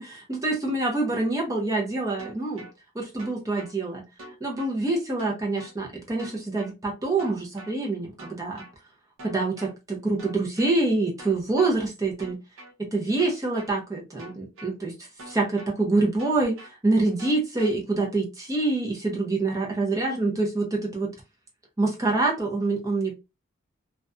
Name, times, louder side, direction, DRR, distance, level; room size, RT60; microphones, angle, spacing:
voice 1, 0.3-2.6 3.0-4.0 4.4-8.6 9.2-12.4 12.9-14.9 15.3-16.6 16.8-21.1 21.8-23.1, right 2 dB, 15° right, 0.6 m, -26 dB
sound 1, 2.2-2.7 3.2-3.7 4.2-4.7 5.2-5.7 6.2-6.7 7.2-7.7 8.2-8.7 9.2-9.7 10.2-10.7 11.2-11.7 12.2-12.7 13.2-13.7 14.2-14.7 15.2-15.7 16.2-16.7 17.2-17.7, right 1 dB, 70° right, 0.5 m, -44 dB
2.4 x 2.2 x 2.4 m
head